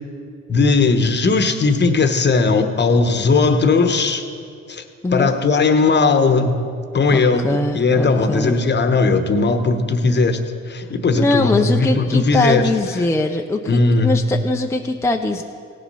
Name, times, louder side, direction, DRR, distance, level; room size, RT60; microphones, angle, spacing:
voice 1, 0.5-4.3 4.7-4.8 5.1-6.7 6.9-10.4 10.7-12.7 13.7-14.2, left 4 dB, 35° left, 8 dB, 1.0 m, -17 dB
voice 2, 7.1-8.6 11.1-15.4, left 2 dB, 10° left, 3 dB, 0.5 m, -21 dB
17.0 x 7.2 x 5.4 m, 2.3 s
cardioid pair, 90°, 30 cm